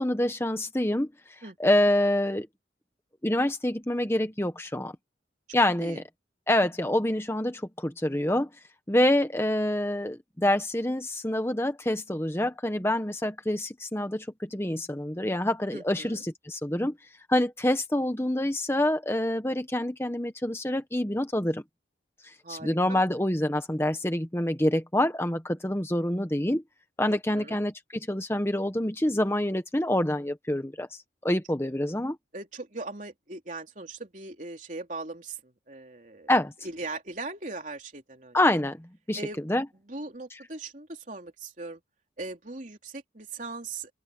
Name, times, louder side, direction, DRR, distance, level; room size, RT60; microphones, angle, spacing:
voice 1, 0.0-2.5 3.2-4.9 5.5-6.0 6.5-8.5 8.9-16.9 17.3-21.6 22.2-26.6 27.0-32.2 36.3-36.5 38.3-39.2 39.5-39.6, left 1 dB, 15° left, 1.1 m, -26 dB
voice 2, 1.4-1.9 5.8-6.0 15.7-16.2 22.4-23.0 27.1-27.6 32.3-38.4 39.2-39.4 39.9-41.8 42.2-43.9, right 3 dB, 40° right, 3.4 m, -40 dB
open air
head